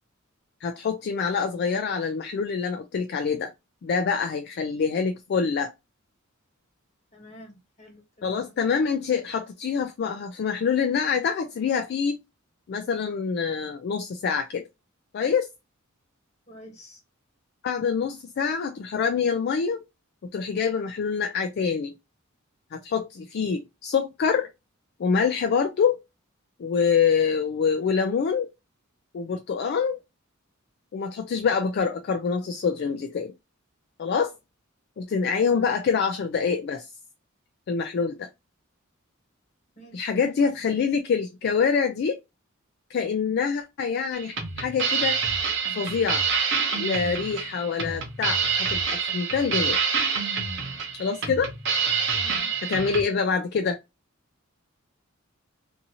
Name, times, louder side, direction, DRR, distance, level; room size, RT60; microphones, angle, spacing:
voice 1, 0.6-3.5 3.8-5.7 8.2-12.2 12.7-14.6 15.1-15.5 17.6-19.8 20.3-21.9 22.7-24.5 25.0-26.0 26.6-28.5 29.1-30.0 30.9-33.3 34.0-34.3 35.0-36.9 37.7-38.3 39.9-42.2 42.9-45.2 45.7-46.2 46.7-49.8 51.0-51.5 52.7-53.8, left 6 dB, 50° left, 0.3 m, -25 dB
voice 2, 7.1-8.5 16.5-17.0 35.4-35.8 39.8-40.1 40.4-40.5 52.1-52.6, equal, 35° left, 1.3 m, -48 dB
sound 1, 44.1-53.0, right 5 dB, 55° right, 0.8 m, -27 dB
2.6 x 2.5 x 2.7 m
head